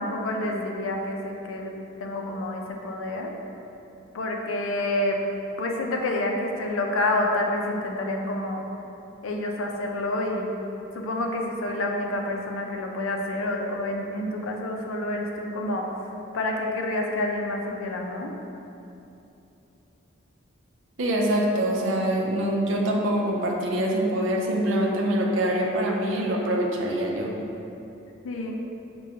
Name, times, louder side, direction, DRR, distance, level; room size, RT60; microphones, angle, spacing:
voice 1, 0.0-1.7 2.0-3.3 4.1-5.2 5.6-8.6 9.2-10.5 11.0-15.9 16.3-18.3 28.2-28.6, left 1 dB, 85° left, 1 dB, 0.5 m, -28 dB
voice 2, 21.0-27.3, right 1 dB, 75° right, -1 dB, 0.5 m, -24 dB
6.2 x 2.2 x 2.7 m, 2.8 s
head